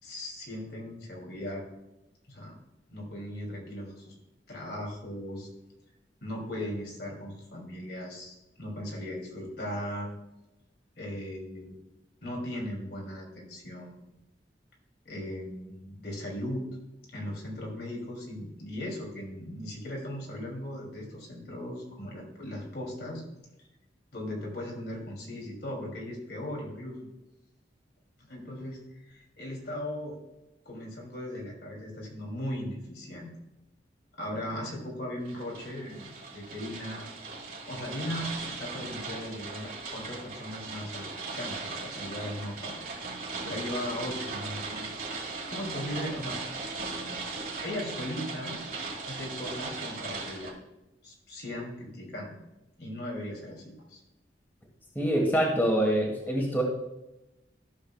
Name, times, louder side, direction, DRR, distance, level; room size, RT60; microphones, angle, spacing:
voice 1, 0.0-1.6 2.3-2.6 2.9-4.1 4.5-5.5 6.2-10.1 11.0-11.7 12.2-14.1 15.0-16.7 17.1-23.2 24.1-27.1 28.3-28.8 29.1-30.2 30.6-33.3 34.2-36.1 36.3-37.1 37.6-42.7 43.4-44.9 45.5-46.4 47.6-48.6 49.0-50.6 51.0-52.4 52.8-54.0, left 1 dB, 65° left, -2 dB, 2.8 m, -38 dB
sound 1, 35.3-50.5, right 3 dB, 50° right, 1.7 m, -38 dB
voice 2, 54.9-56.6, right 1 dB, 10° left, -1 dB, 1.5 m, -25 dB
14.0 x 6.5 x 2.3 m, 0.95 s
head